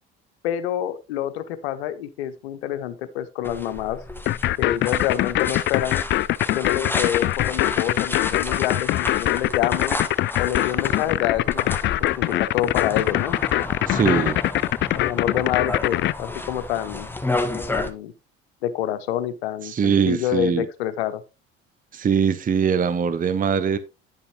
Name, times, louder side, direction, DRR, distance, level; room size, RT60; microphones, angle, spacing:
voice 1, 0.4-4.0 4.6-6.0 6.5-10.0 10.4-13.4 14.9-17.1 17.5-18.1 18.6-21.2, left 11 dB, 75° left, 1.0 m, -27 dB
sound 1, 3.4-17.9, left 2 dB, 5° left, 1.1 m, -32 dB
sound 2, 4.3-16.1, left 15 dB, 35° left, 0.4 m, -22 dB
voice 2, 13.9-14.4 19.7-20.7 21.9-23.8, right 7 dB, 25° right, 0.8 m, -22 dB
10.0 x 6.9 x 2.9 m
hypercardioid pair, 65°, 32 cm